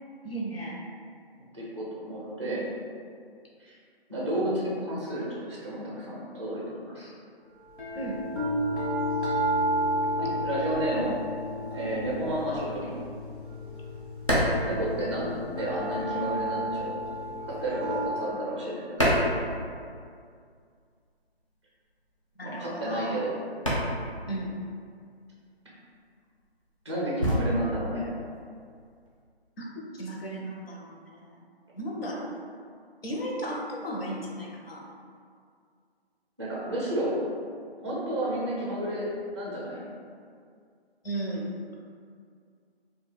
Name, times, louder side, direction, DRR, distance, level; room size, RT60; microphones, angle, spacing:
voice 1, 0.2-0.8 7.9-8.2 22.4-23.2 24.3-24.5 29.6-29.7 30.0-31.4 31.7-32.3 33.0-34.9 41.0-41.5, right 1 dB, 65° left, -3 dB, 0.6 m, -35 dB
voice 2, 1.5-2.7 3.6-3.7 4.1-7.1 10.2-11.1 11.5-13.0 14.6-16.9 17.5-19.3 22.4-23.3 26.8-28.0 36.4-37.2 37.8-39.1 39.3-39.8, right 1 dB, 30° right, -6 dB, 0.4 m, -31 dB
sound 1, 7.7-18.1, equal, 85° left, 1.1 m, -31 dB
sound 2, 14.2-15.8 16.1-20.2 20.5-29.2, equal, 35° left, 0.4 m, -30 dB
2.3 x 2.2 x 3.1 m, 2.2 s
figure-of-eight pair, 155°, 32 cm